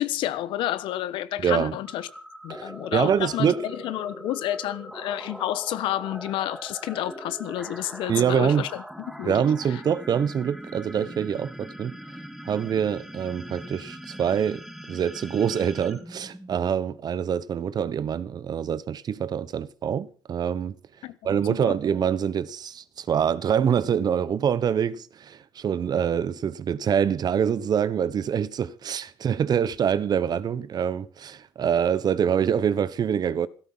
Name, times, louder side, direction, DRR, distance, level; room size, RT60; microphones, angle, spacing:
voice 1, 0.0-2.1 2.4-9.4 21.0-21.2 21.6-21.7, left 13 dB, 75° left, 1.3 m, -30 dB
voice 2, 1.4-1.8 2.5-3.6 8.1-8.7 9.2-12.0 12.5-20.7 21.2-33.5, right 8 dB, 50° right, 1.1 m, -25 dB
sound 1, 1.8-17.0, equal, 5° right, 3.1 m, -41 dB
16.5 x 13.5 x 5.7 m
supercardioid pair, 70°, 9 cm